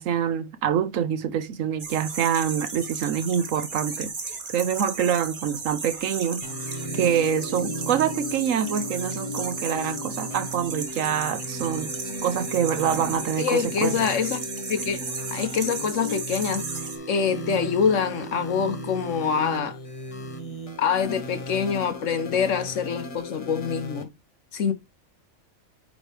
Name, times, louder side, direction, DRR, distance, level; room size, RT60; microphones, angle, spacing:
voice 1, 0.0-4.1 4.5-6.4 6.9-11.9 12.2-13.9, right 8 dB, 80° right, 1.1 m, -25 dB
sound 1, 1.8-17.0, right 4 dB, 40° right, 1.2 m, -35 dB
sound 2, 6.4-24.0, equal, 30° left, 0.7 m, -36 dB
voice 2, 13.4-15.0 15.3-16.7 17.1-19.8 20.8-24.1 24.5-24.7, left 6 dB, 70° left, 1.3 m, -25 dB
8.9 x 3.2 x 3.3 m
omnidirectional pair, 1.4 m